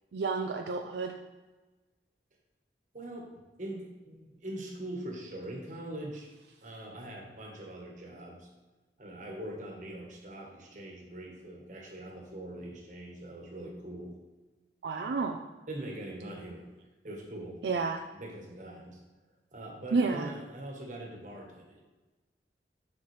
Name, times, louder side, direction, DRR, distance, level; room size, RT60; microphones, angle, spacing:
voice 1, 0.1-1.1 14.8-15.4 17.6-18.0 19.9-20.3, right 4 dB, 75° right, 3 dB, 0.4 m, -30 dB
voice 2, 2.9-6.3 6.6-8.5 9.0-14.2 15.7-16.7 17.0-17.8 18.1-19.0 19.5-21.8, right 1 dB, 45° right, 0 dB, 1.3 m, -42 dB
6.8 x 5.3 x 3.3 m, 1.2 s
head